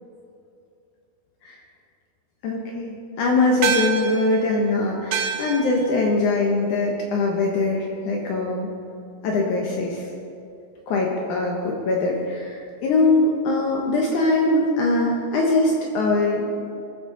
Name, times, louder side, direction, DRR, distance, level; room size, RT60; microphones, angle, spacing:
voice 1, 2.4-8.7 9.2-10.1 10.9-16.5, left 2 dB, 70° left, -1 dB, 2.4 m, -22 dB
sound 1, 3.6-8.3, right 7 dB, 80° right, 1.5 m, -30 dB
19.0 x 7.9 x 3.9 m, 2.5 s
omnidirectional pair, 3.9 m